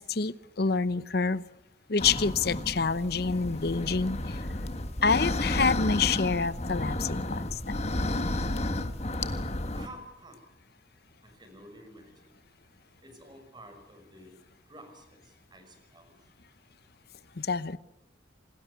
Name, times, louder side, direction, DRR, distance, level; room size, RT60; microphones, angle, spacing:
voice 1, 0.0-1.4 1.9-4.4 5.0-7.8 17.4-17.8, left 4 dB, 60° left, 17 dB, 0.9 m, -27 dB
sound 1, 2.0-9.9, left 1 dB, 35° left, 1.7 m, -32 dB
voice 2, 9.7-10.4 11.2-12.4 13.0-14.3 14.7-16.3, right 1 dB, 25° right, 6 dB, 6.2 m, -51 dB
27.5 x 19.5 x 8.3 m, 0.88 s
head